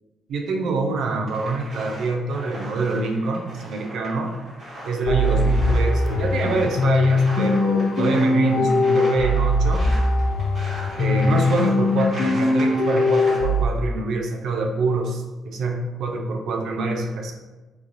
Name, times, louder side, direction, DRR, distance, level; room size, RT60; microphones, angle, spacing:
voice 1, 0.3-4.3 4.8-9.9 11.0-17.3, right 3 dB, 70° right, 2 dB, 0.4 m, -25 dB
sound 1, 1.3-13.4, right 1 dB, 50° right, 1.4 m, -39 dB
sound 2, 5.1-13.7, left 2 dB, 60° left, 0.3 m, -21 dB
3.0 x 2.4 x 2.6 m, 1.2 s
cardioid pair, 90°, 0 cm